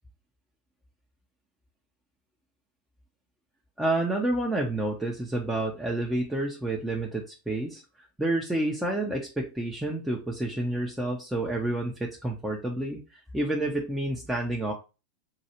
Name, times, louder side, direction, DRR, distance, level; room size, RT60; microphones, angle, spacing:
voice 1, 3.8-14.7, right 1 dB, 5° right, -2 dB, 0.6 m, -29 dB
4.6 x 2.3 x 2.9 m, 0.31 s
figure-of-eight pair, 90°, 0 cm